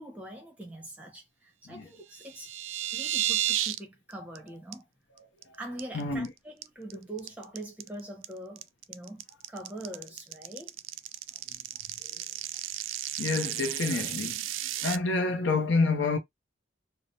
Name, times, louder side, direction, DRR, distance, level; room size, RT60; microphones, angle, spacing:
voice 1, 0.0-2.5 2.9-4.8 5.5-10.8, right 1 dB, 5° right, 0.9 m, -43 dB
sound 1, 2.1-3.8 4.1-4.4 4.7-4.8 5.2-5.4 5.8-6.3 6.6-15.0, right 13 dB, 80° right, 0.3 m, -33 dB
voice 2, 5.9-6.3 12.1-12.2 13.2-16.2, left 3 dB, 70° left, 0.6 m, -28 dB
3.2 x 2.0 x 2.6 m
head